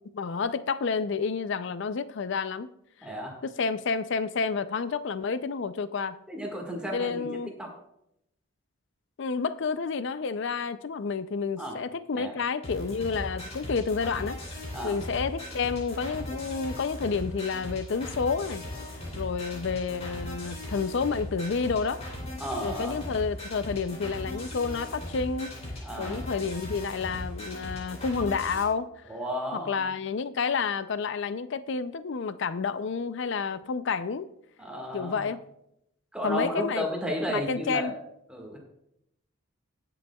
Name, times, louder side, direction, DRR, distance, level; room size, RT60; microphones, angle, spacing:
voice 1, 0.1-2.7 3.4-6.2 6.9-7.5 9.2-14.4 14.8-18.6 19.2-22.0 22.6-25.5 26.0-28.9 29.7-34.3 34.9-35.4 36.2-36.9 37.3-37.9, left 5 dB, 55° left, 0.4 m, -30 dB
voice 2, 3.0-3.4 6.3-7.3 7.6-7.7 11.6-11.8 12.1-12.3 14.7-15.0 22.4-23.0 25.8-26.3 29.1-29.8 34.6-35.3 36.1-38.0 38.3-38.6, equal, 5° right, 1.7 m, -33 dB
sound 1, 12.6-28.6, left 1 dB, 30° left, 3.1 m, -38 dB
20.0 x 6.9 x 2.3 m
head